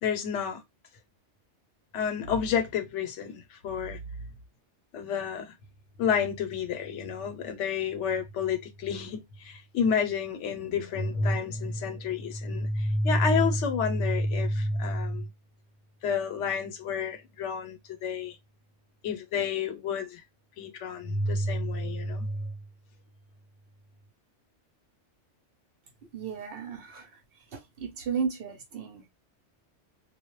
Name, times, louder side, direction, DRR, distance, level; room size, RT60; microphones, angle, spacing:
voice 1, 0.0-0.6 1.9-4.0 4.9-5.5 6.0-15.3 16.0-18.4 19.0-20.2 20.6-22.5, left 4 dB, 80° left, 0.9 m, -29 dB
voice 2, 26.0-29.1, right 6 dB, 60° right, 0.7 m, -35 dB
2.2 x 2.0 x 3.0 m
omnidirectional pair, 1.2 m